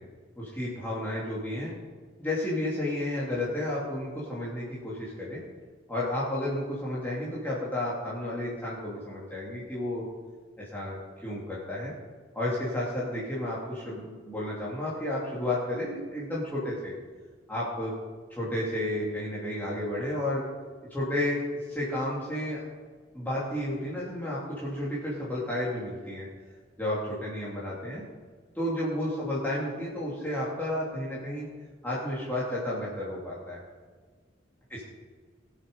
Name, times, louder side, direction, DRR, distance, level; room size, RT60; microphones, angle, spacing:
voice 1, 0.4-1.7 2.2-5.4 5.9-10.0 10.6-11.9 12.3-16.9 17.5-17.9 18.3-20.4 20.9-22.6 23.1-26.3 26.8-28.0 28.5-31.5 31.8-33.6 34.7-34.8, left 1 dB, 10° left, -8 dB, 2.5 m, -32 dB
19.5 x 6.8 x 5.3 m, 1.5 s
head